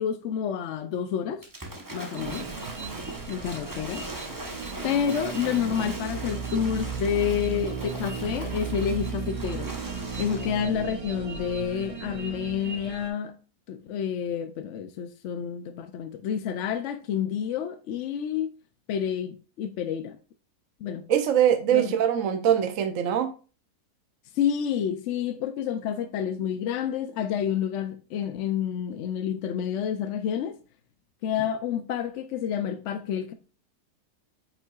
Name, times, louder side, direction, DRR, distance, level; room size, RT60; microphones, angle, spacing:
voice 1, 0.0-1.4 1.9-2.5 3.3-4.1 4.8-9.7 10.2-13.3 13.7-18.5 18.9-20.2 20.8-21.0 21.7-21.9 24.3-30.6 31.2-33.3, left 8 dB, 65° left, 0.7 m, -29 dB
Waves surf / Splash splatter, 1.4-10.7, right 1 dB, 15° right, 0.8 m, -40 dB
sound 1, 2.2-13.1, right 6 dB, 40° right, 0.5 m, -35 dB
voice 2, 21.1-23.3, right 9 dB, 60° right, 1.0 m, -22 dB
8.3 x 5.6 x 2.4 m
omnidirectional pair, 1.7 m